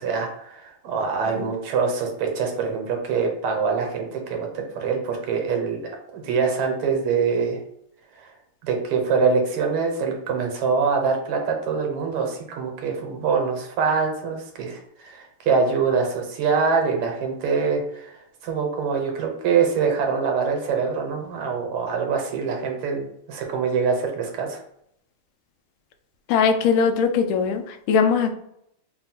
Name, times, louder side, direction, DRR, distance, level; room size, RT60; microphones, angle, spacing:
voice 1, 0.0-7.6 8.1-8.3 8.6-24.6, right 5 dB, 80° right, 2 dB, 1.7 m, -24 dB
voice 2, 26.3-28.3, left 6 dB, 75° left, 6 dB, 1.3 m, -20 dB
4.0 x 2.2 x 4.2 m, 0.73 s
omnidirectional pair, 2.4 m